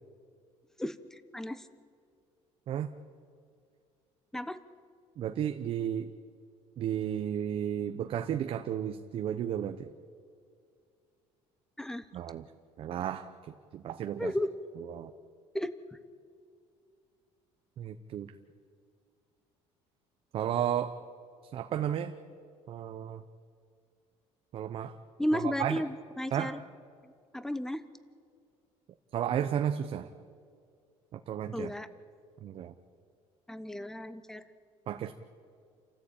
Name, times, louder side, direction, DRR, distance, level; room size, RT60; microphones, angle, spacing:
voice 1, 0.8-1.7 4.3-4.6 11.8-12.1 14.2-14.5 15.5-15.7 25.2-26.6 27.0-27.8 31.5-31.9 33.5-34.4, left 1 dB, 5° left, 13 dB, 0.9 m, -34 dB
voice 2, 5.2-6.1 6.8-9.9 12.1-12.4 12.8-13.3 13.7-14.3 14.9-15.1 17.8-18.3 20.3-21.0 21.5-22.1 22.7-23.2 24.5-25.0 25.3-25.8 26.3-26.5 29.1-30.1 31.1-31.7 32.4-32.7 34.9-35.1, right 9 dB, 50° right, 7 dB, 0.9 m, -33 dB
29.0 x 14.0 x 8.8 m, 2.3 s
cardioid pair, 135°, 12 cm